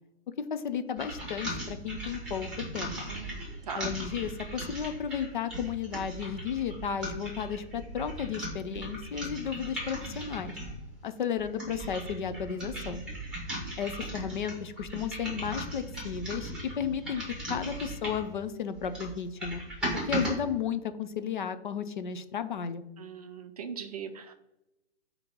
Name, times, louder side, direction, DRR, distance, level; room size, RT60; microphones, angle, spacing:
voice 1, 0.4-2.5 2.7-2.9 3.7-10.6 11.0-13.0 13.8-17.2 17.5-19.6 20.1-22.8, left 7 dB, 45° left, 11 dB, 0.5 m, -33 dB
sound 1, 1.0-10.8 11.4-18.3 18.7-20.3, right 1 dB, ahead, 1.7 m, -38 dB
voice 2, 3.1-3.4 3.7-3.9 23.0-24.3, right 7 dB, 35° right, 8 dB, 0.6 m, -40 dB
8.3 x 2.9 x 5.2 m, 0.93 s
hypercardioid pair, 165°, 33 cm